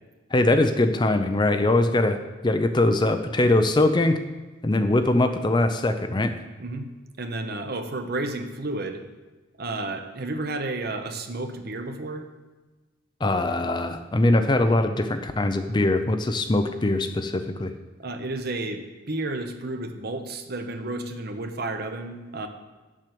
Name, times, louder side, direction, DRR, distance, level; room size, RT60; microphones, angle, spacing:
voice 1, 0.3-2.2 2.4-4.2 4.6-6.3 13.2-17.7, left 2 dB, 20° left, 8 dB, 0.4 m, -22 dB
voice 2, 7.2-9.0 9.6-12.3 18.0-22.5, right 2 dB, 50° right, 6 dB, 0.9 m, -31 dB
7.5 x 6.6 x 7.5 m, 1.2 s
head